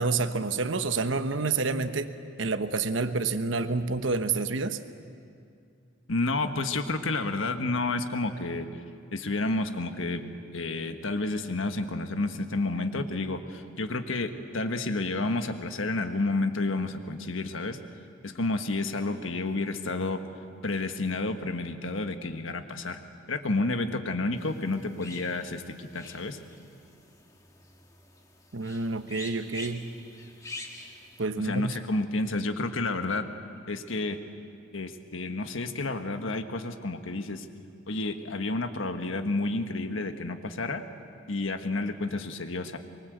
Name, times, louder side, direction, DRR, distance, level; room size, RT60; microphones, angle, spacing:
voice 1, 0.0-2.1 2.4-4.8 28.5-29.9 31.2-31.7, right 4 dB, 70° right, 10 dB, 1.1 m, -28 dB
voice 2, 6.1-8.7 9.1-10.2 10.5-17.8 18.2-20.2 20.6-23.0 23.3-26.4 31.4-33.3 33.7-34.2 34.7-37.5 37.9-40.8 41.3-42.8, left 2 dB, 80° left, 7 dB, 1.5 m, -30 dB
sound 1, 24.4-31.2, left 2 dB, 15° left, 1.7 m, -46 dB
24.5 x 23.0 x 8.1 m, 2.4 s
head